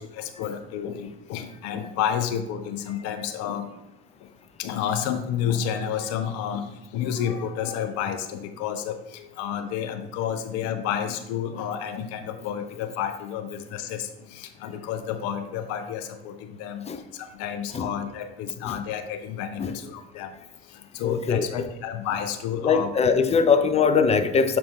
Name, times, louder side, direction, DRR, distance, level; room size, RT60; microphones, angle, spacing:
voice 1, 0.0-3.7 4.6-16.8 17.2-20.3 20.9-22.9, left 8 dB, 55° left, 7 dB, 0.8 m, -30 dB
voice 2, 21.0-21.4 22.6-24.6, left 5 dB, 20° left, 9 dB, 0.5 m, -21 dB
6.8 x 4.3 x 3.4 m, 0.96 s
figure-of-eight pair, 65°, 31 cm